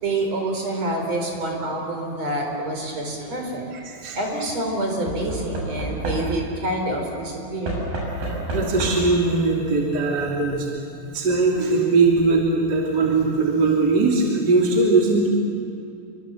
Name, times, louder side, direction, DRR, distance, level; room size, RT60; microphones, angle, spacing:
voice 1, 0.0-3.7 4.1-7.8, right 1 dB, 45° right, 1 dB, 5.5 m, -27 dB
Knock / Wood, 2.9-3.3 5.1-6.6 7.6-9.2 10.3-10.4 10.6-10.7, right 1 dB, 75° right, 8.4 m, -30 dB
voice 2, 3.7-4.2 8.2-10.7 11.1-15.3, right 3 dB, 30° right, -3 dB, 3.2 m, -20 dB
28.5 x 24.5 x 7.5 m, 2.8 s
omnidirectional pair, 4.2 m